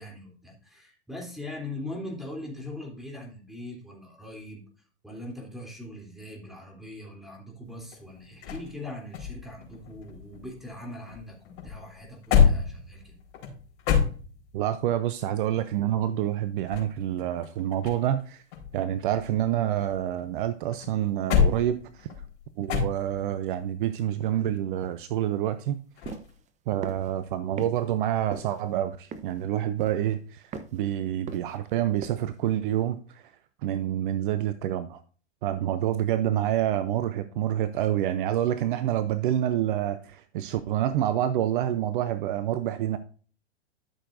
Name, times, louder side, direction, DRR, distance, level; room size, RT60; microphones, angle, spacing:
voice 1, 0.0-4.6 5.0-13.1, left 1 dB, ahead, 3.2 m, -41 dB
sound 1, 7.6-10.8 11.1-14.7 16.4-18.2 18.5-20.3 20.7-23.4 26.0-26.3, left 7 dB, 50° left, 4.3 m, -28 dB
voice 2, 14.5-18.4 18.7-22.1 22.6-25.8 26.7-33.2 33.6-35.0 35.4-43.0, right 11 dB, 50° right, 0.7 m, -27 dB
sound 2, 26.1-26.3 26.8-27.1 27.6-27.7 28.3-28.6 29.1-29.4 29.8-30.1 30.5-30.8 31.3-31.7 32.0-32.2, right 6 dB, 20° right, 0.8 m, -38 dB
13.0 x 6.6 x 2.6 m
hypercardioid pair, 105°, 34 cm